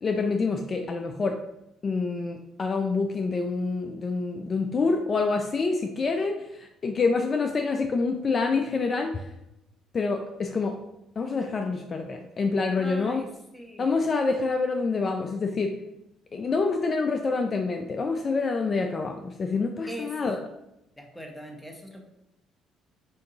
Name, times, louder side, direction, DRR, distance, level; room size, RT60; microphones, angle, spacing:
voice 1, 0.0-1.4 1.8-9.3 9.9-10.8 11.2-13.2 13.8-15.8 16.3-20.4, left 4 dB, 40° left, 4 dB, 0.4 m, -27 dB
voice 2, 12.7-13.3 13.5-13.9 19.9-20.3 21.0-22.0, equal, 5° left, 2 dB, 0.9 m, -41 dB
6.3 x 2.7 x 2.7 m, 0.86 s
supercardioid pair, 75°, 0 cm